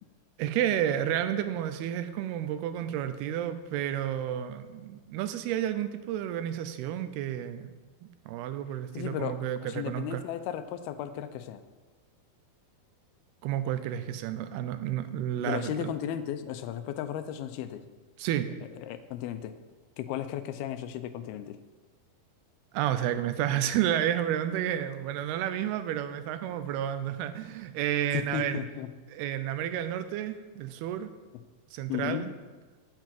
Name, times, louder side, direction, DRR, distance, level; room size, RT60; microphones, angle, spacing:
voice 1, 0.4-7.7 8.0-10.2 13.4-15.9 18.2-18.5 22.7-28.6 29.1-31.1 31.7-32.3, right 11 dB, 85° right, 11 dB, 2.7 m, -31 dB
voice 2, 8.9-11.6 15.4-17.9 18.8-19.6 20.0-21.6 28.1-28.9 31.9-32.3, left 10 dB, 80° left, 10 dB, 2.5 m, -35 dB
9.1 x 7.4 x 7.6 m, 1.3 s
omnidirectional pair, 4.5 m